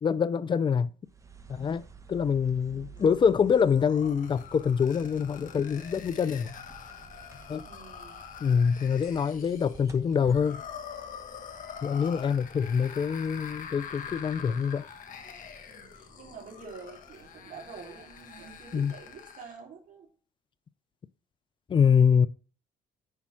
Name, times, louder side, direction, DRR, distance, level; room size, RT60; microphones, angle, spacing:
voice 1, 0.0-0.9 1.5-6.5 7.5-7.6 8.4-10.6 11.8-14.9 18.7-18.9 21.7-22.3, left 6 dB, 30° left, 0.5 m, -25 dB
sound 1, 1.0-19.5, right 4 dB, 20° right, 0.9 m, -53 dB
voice 2, 2.6-3.0 7.6-8.2 15.7-20.1, right 5 dB, 50° right, 2.9 m, -47 dB
sound 2, 3.0-19.6, left 7 dB, 50° left, 1.3 m, -45 dB
10.0 x 3.5 x 6.0 m
cardioid pair, 110°, 17 cm